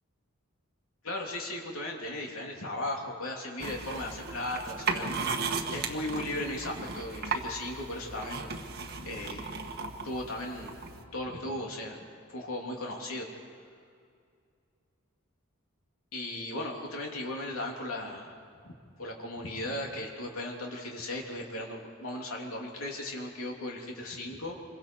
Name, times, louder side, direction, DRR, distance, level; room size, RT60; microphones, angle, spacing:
voice 1, 1.0-8.5 9.0-9.5 10.0-10.8 11.1-12.0 12.3-13.3 16.1-18.4 18.6-18.7 19.0-24.6, left 1 dB, 85° left, 0 dB, 2.9 m, -37 dB
sound 1, 3.6-11.0, right 4 dB, 50° right, 1.6 m, -36 dB
26.5 x 23.0 x 4.6 m, 2.3 s
head